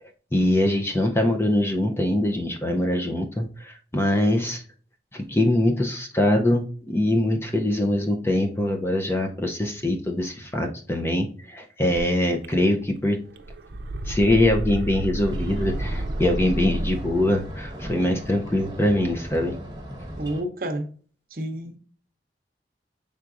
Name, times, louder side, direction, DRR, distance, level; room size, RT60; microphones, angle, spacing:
voice 1, 0.3-4.6 5.1-13.2 14.1-19.6, left 1 dB, 15° left, 0.5 m, -23 dB
sound 1, 11.9-12.0 12.4-13.0 13.3-17.3, right 1 dB, 85° right, 0.5 m, -31 dB
sound 2, 15.2-20.4, equal, 25° right, 1.2 m, -37 dB
voice 2, 20.2-20.9 21.3-21.8, right 1 dB, 55° right, 0.8 m, -29 dB
5.9 x 3.6 x 2.4 m
head